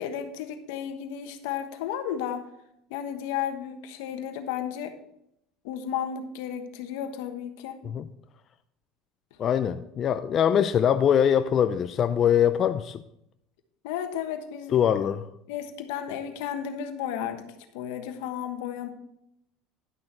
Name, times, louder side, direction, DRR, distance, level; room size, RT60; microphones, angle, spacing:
voice 1, 0.0-2.5 2.9-4.9 5.6-7.8 13.8-14.8 15.5-17.5 17.7-18.9, left 9 dB, 80° left, 7 dB, 1.2 m, -33 dB
voice 2, 9.4-13.0 14.7-15.3, left 9 dB, 40° left, 10 dB, 0.4 m, -23 dB
11.0 x 6.3 x 4.4 m, 0.78 s
supercardioid pair, 125°, 0 cm